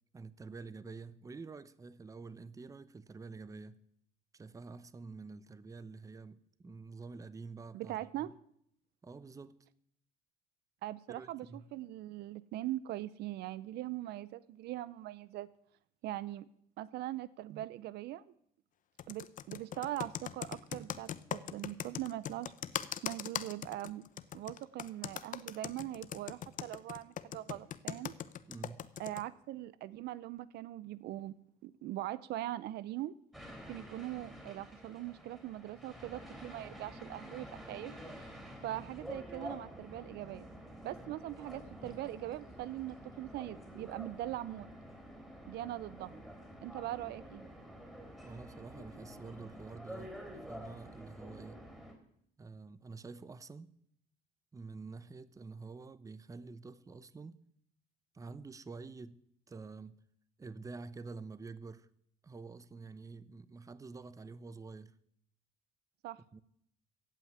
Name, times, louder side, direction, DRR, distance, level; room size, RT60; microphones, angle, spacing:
voice 1, 0.1-3.8 4.3-8.3 9.0-9.6 11.1-11.7 28.5-28.9 48.2-50.2 50.5-51.6 52.4-53.7 54.5-57.4 58.1-59.2 59.5-60.0 60.4-61.9 62.2-64.9 66.3-66.4, right 4 dB, 20° right, 0.7 m, -48 dB
voice 2, 7.7-8.3 10.8-15.5 16.0-16.5 16.8-18.3 19.1-22.5 23.0-24.1 24.3-28.1 29.0-31.3 31.6-33.1 33.7-37.9 38.6-40.4 40.8-44.7 45.5-46.2 46.6-47.5 66.0-66.2, right 14 dB, 75° right, 0.6 m, -41 dB
Computer keyboard, 19.0-29.2, left 10 dB, 50° left, 0.7 m, -40 dB
sound 1, 33.3-51.9, equal, 5° right, 3.8 m, -49 dB
15.5 x 5.8 x 9.3 m
cardioid pair, 110°, 17 cm